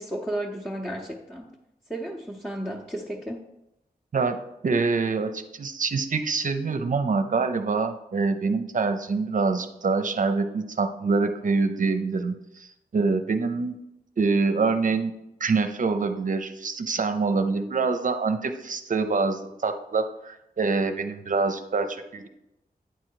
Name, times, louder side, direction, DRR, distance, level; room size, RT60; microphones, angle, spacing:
voice 1, 0.0-1.5 1.9-3.4, right 1 dB, 5° left, -3 dB, 0.8 m, -33 dB
voice 2, 4.6-13.7 14.2-15.1 15.4-22.3, right 4 dB, 55° right, 7 dB, 0.6 m, -25 dB
9.1 x 3.9 x 4.6 m, 0.88 s
wide cardioid pair, 75°, 16 cm